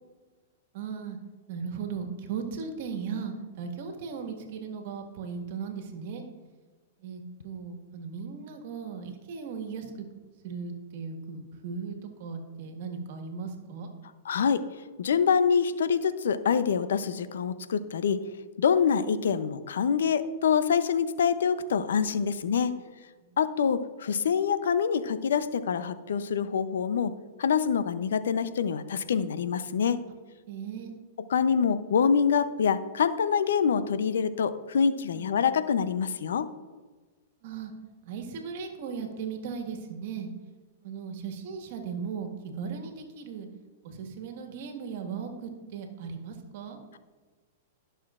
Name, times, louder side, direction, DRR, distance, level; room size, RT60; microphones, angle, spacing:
voice 1, 0.7-1.2 1.5-6.2 7.0-10.0 10.4-13.9 23.2-23.3 30.5-30.9 35.1-35.4 37.4-37.7 38.0-40.3 40.8-43.5 43.8-46.8, right 6 dB, 60° right, 4 dB, 1.6 m, -37 dB
voice 2, 14.2-14.6 15.0-18.2 18.6-22.7 23.4-27.1 27.4-30.0 31.2-36.5, left 6 dB, 80° left, 13 dB, 0.6 m, -25 dB
15.5 x 6.6 x 2.5 m, 1.3 s
hypercardioid pair, 120°, 0 cm